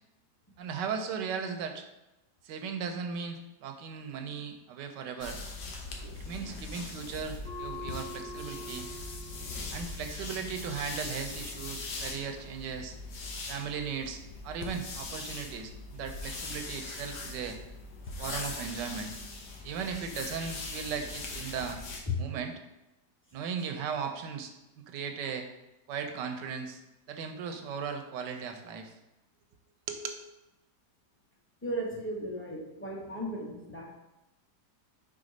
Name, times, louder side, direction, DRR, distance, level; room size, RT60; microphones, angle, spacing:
voice 1, 0.6-1.8 2.4-5.4 6.2-8.9 9.7-12.9 13.5-17.6 18.2-19.1 19.6-21.8 22.2-22.5 23.3-25.5 25.9-26.8 27.1-28.9 29.9-30.2, right 6 dB, 80° right, 6 dB, 1.3 m, -37 dB
sound 1, 5.2-22.0, left 3 dB, 70° left, 1.4 m, -41 dB
sound 2, 7.4-12.6, left 1 dB, 90° left, 3.2 m, -46 dB
voice 2, 31.6-33.9, right 1 dB, 10° left, -3 dB, 1.0 m, -36 dB
4.9 x 4.0 x 5.2 m, 0.96 s
omnidirectional pair, 1.9 m